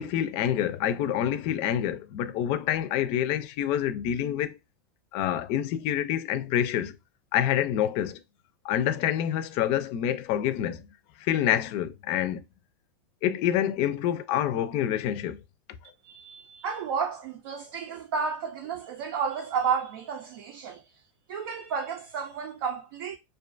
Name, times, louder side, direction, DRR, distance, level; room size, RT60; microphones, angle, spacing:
voice 1, 0.0-4.6 5.1-7.0 7.3-8.2 8.6-10.9 11.2-12.4 13.2-15.4, left 10 dB, 50° left, 0.4 m, -27 dB
voice 2, 16.0-20.8 21.3-23.2, right 6 dB, 75° right, 0.5 m, -32 dB
2.4 x 2.2 x 2.5 m
supercardioid pair, 125°, 12 cm